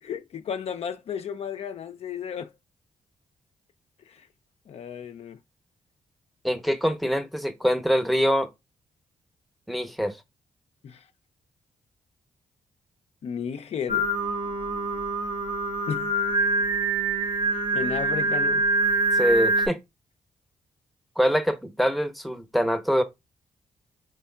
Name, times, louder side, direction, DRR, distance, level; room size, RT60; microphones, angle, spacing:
voice 1, 0.0-2.5 4.1-4.3 4.7-5.4 10.8-11.0 13.2-14.1 15.9-16.1 17.5-18.6, left 7 dB, 55° left, 0.4 m, -33 dB
voice 2, 6.4-8.5 9.7-10.2 19.1-19.8 21.2-23.0, equal, ahead, 0.7 m, -24 dB
Singing, 13.9-19.7, right 2 dB, 40° right, 0.7 m, -25 dB
3.4 x 3.1 x 2.2 m
hypercardioid pair, 45°, 13 cm